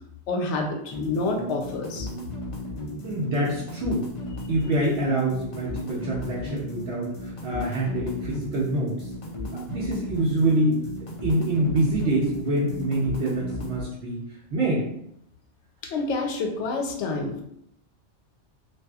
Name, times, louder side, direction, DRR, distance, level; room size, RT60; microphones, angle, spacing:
voice 1, 0.3-2.1 15.8-17.4, left 3 dB, 75° left, 2 dB, 0.8 m, -28 dB
sound 1, 0.9-13.8, equal, 55° left, 0.3 m, -35 dB
voice 2, 3.0-4.1 4.5-9.0 9.5-10.8 11.2-14.2 14.5-14.8, right 1 dB, 65° right, -5 dB, 0.9 m, -25 dB
2.7 x 2.4 x 2.3 m, 0.74 s
omnidirectional pair, 1.2 m